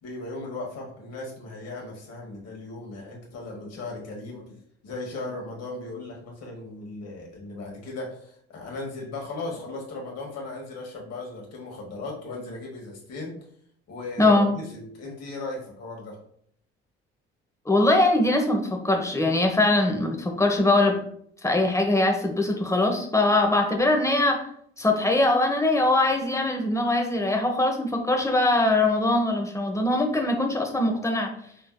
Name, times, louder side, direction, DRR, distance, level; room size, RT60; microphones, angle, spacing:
voice 1, 0.0-4.6 4.8-13.3 13.9-16.2, left 2 dB, 55° left, -1 dB, 1.5 m, -37 dB
voice 2, 14.2-14.5 17.7-21.0 21.4-24.4 24.8-31.3, left 2 dB, 10° left, 2 dB, 1.0 m, -22 dB
5.4 x 3.4 x 2.2 m, 0.64 s
figure-of-eight pair, 50°, 31 cm